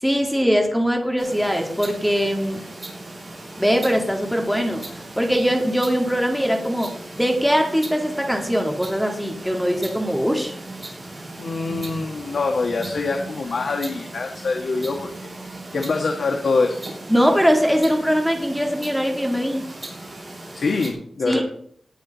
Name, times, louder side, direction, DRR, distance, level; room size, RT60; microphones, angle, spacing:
voice 1, 0.0-2.6 3.6-10.6 17.1-19.7 21.3-21.4, equal, ahead, 2 dB, 1.8 m, -21 dB
sound 1, 1.2-20.9, right 2 dB, 30° right, 5.6 m, -37 dB
voice 2, 11.4-15.3 15.7-16.8 20.6-21.4, left 3 dB, 70° left, 2 dB, 1.5 m, -24 dB
18.5 x 6.6 x 4.1 m, 0.63 s
wide cardioid pair, 120°, 0 cm